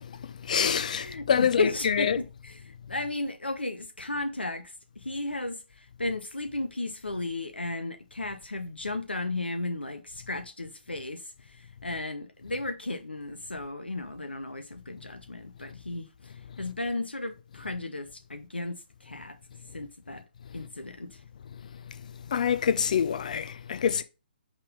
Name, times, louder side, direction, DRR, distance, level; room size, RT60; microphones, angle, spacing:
voice 1, 0.4-2.2 22.3-24.0, left 7 dB, 45° left, 0.6 m, -26 dB
voice 2, 1.0-19.4 19.7-20.2 20.5-21.2, left 2 dB, 80° left, 0.6 m, -34 dB
5.5 x 3.6 x 4.9 m
figure-of-eight pair, 135°, 6 cm